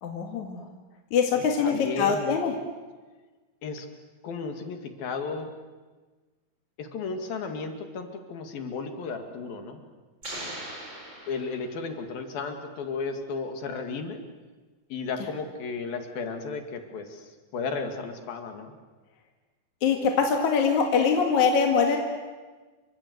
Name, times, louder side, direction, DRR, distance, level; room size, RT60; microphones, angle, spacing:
voice 1, 0.0-0.6 1.1-2.5 19.8-22.0, left 6 dB, 55° left, 3 dB, 3.1 m, -23 dB
voice 2, 1.3-2.3 3.6-3.9 4.2-5.5 6.8-9.9 11.3-14.2 14.9-18.7, left 4 dB, 70° left, 6 dB, 3.8 m, -34 dB
sound 1, 10.2-12.1, right 1 dB, 30° right, 6.1 m, -40 dB
29.0 x 25.0 x 8.0 m, 1.3 s
omnidirectional pair, 4.4 m